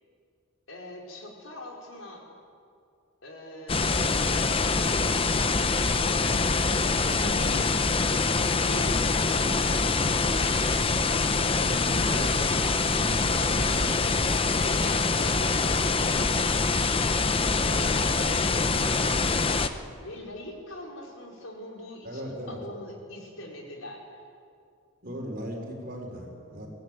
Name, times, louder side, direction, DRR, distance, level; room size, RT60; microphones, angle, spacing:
voice 1, 0.7-2.2 3.2-5.5 6.9-7.7 8.6-9.9 12.2-12.7 13.1-14.0 14.5-16.5 17.6-19.5 20.0-24.2, left 1 dB, 85° left, 0 dB, 4.7 m, -42 dB
sound 1, 3.7-19.7, left 4 dB, 25° left, 0.8 m, -24 dB
voice 2, 11.6-12.3 12.6-13.4 22.0-22.6 25.0-26.7, equal, 45° right, 0 dB, 4.5 m, -37 dB
23.0 x 17.5 x 9.1 m, 2.4 s
head